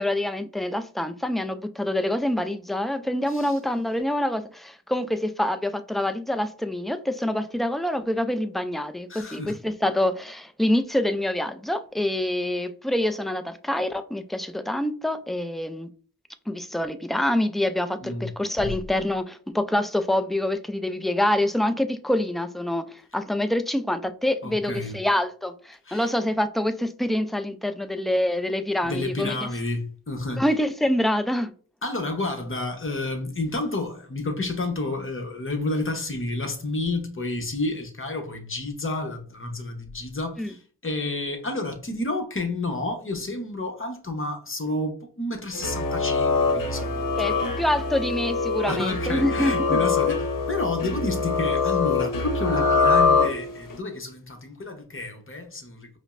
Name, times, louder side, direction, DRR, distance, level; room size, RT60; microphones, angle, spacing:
voice 1, 0.0-15.9 16.5-29.4 30.4-31.5 40.4-40.5 47.2-49.8, left 1 dB, ahead, 0.3 m, -26 dB
voice 2, 9.1-9.6 18.0-18.3 18.6-18.7 24.4-24.9 25.9-26.1 28.8-30.4 31.8-47.6 48.6-56.0, left 2 dB, 35° left, 0.9 m, -30 dB
sound 1, 45.5-53.7, left 4 dB, 65° left, 0.9 m, -24 dB
5.0 x 2.1 x 2.5 m
cardioid pair, 55°, 35 cm